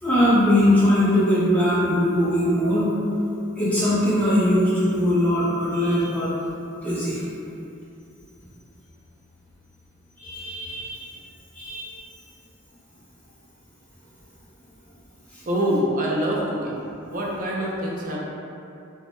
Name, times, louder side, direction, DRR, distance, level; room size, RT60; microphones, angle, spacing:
voice 1, 0.0-2.9 3.6-6.3 6.8-7.2 10.2-11.1 11.5-12.0 15.3-15.4, left 1 dB, 5° left, -11 dB, 0.6 m, -21 dB
voice 2, 15.5-16.8 17.0-18.2, equal, 35° right, -4 dB, 0.4 m, -25 dB
3.4 x 2.1 x 2.5 m, 2.7 s
head